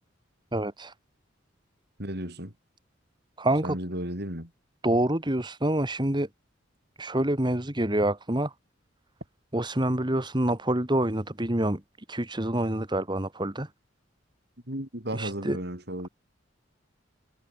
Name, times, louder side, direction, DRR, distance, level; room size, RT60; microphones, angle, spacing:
voice 1, 0.5-0.9 3.4-3.8 4.8-6.3 7.0-8.5 9.5-11.8 12.1-13.7 15.1-15.6, right 1 dB, 25° right, 2.3 m, -27 dB
voice 2, 2.0-2.5 3.6-4.5 14.7-16.1, right 1 dB, 55° right, 7.9 m, -34 dB
head